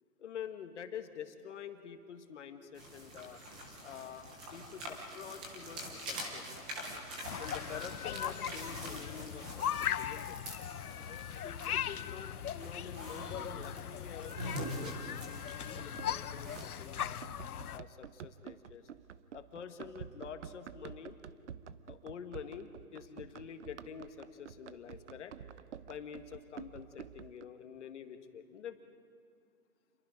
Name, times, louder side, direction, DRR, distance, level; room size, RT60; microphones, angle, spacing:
voice 1, 0.2-3.4 3.8-6.5 7.4-10.4 11.4-17.2 17.7-18.9 19.3-21.2 21.9-25.4 25.8-28.8, left 7 dB, 50° left, 7 dB, 1.8 m, -47 dB
sound 1, 2.7-17.2, equal, 5° right, 0.6 m, -45 dB
sound 2, 7.2-17.8, left 10 dB, 70° left, 0.8 m, -39 dB
Run, 15.8-27.5, right 8 dB, 50° right, 0.7 m, -50 dB
28.5 x 22.0 x 5.2 m, 2.3 s
hypercardioid pair, 160°, 46 cm